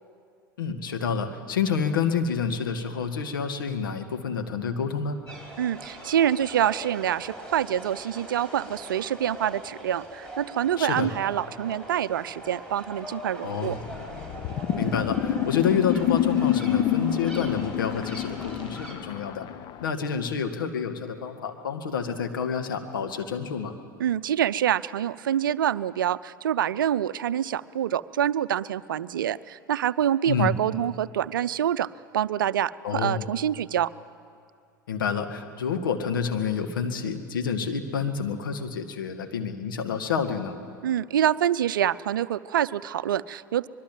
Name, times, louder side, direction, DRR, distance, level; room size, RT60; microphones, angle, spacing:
voice 1, 0.6-5.2 10.8-11.1 13.4-13.8 14.8-19.5 19.8-23.7 30.3-30.6 32.8-33.3 34.9-40.6, left 6 dB, 75° left, 6 dB, 1.9 m, -28 dB
sound 1, 5.3-18.9, right 1 dB, 5° left, 5.6 m, -41 dB
voice 2, 5.6-13.8 24.0-33.9 40.8-43.7, right 10 dB, 75° right, 17 dB, 0.5 m, -26 dB
sound 2, 13.7-19.9, left 10 dB, 45° left, 0.9 m, -28 dB
25.0 x 21.5 x 7.5 m, 2.2 s
figure-of-eight pair, 80°, 11 cm